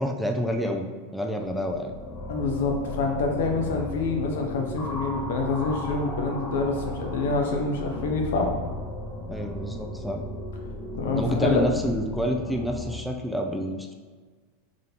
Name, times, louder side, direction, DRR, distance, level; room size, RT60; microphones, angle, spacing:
voice 1, 0.0-2.0 9.3-10.2 11.1-13.9, equal, ahead, 1 dB, 0.4 m, -28 dB
sound 1, 1.5-12.9, left 1 dB, 55° left, 1.5 m, -35 dB
voice 2, 2.3-8.5 10.9-11.6, left 3 dB, 80° left, 2 dB, 0.7 m, -26 dB
3.6 x 2.7 x 3.7 m, 1.5 s
supercardioid pair, 125°, 0 cm